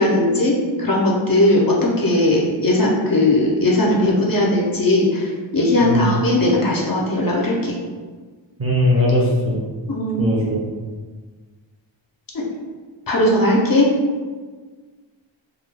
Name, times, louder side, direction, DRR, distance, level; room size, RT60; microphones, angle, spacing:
voice 1, 0.0-7.8 9.9-10.3 12.3-12.4 13.1-13.9, left 1 dB, 50° left, -3 dB, 0.6 m, -18 dB
voice 2, 5.8-6.1 8.6-9.6 10.2-10.6, left 1 dB, 30° right, -4 dB, 0.6 m, -19 dB
2.4 x 2.2 x 3.2 m, 1.4 s
wide cardioid pair, 85°, 47 cm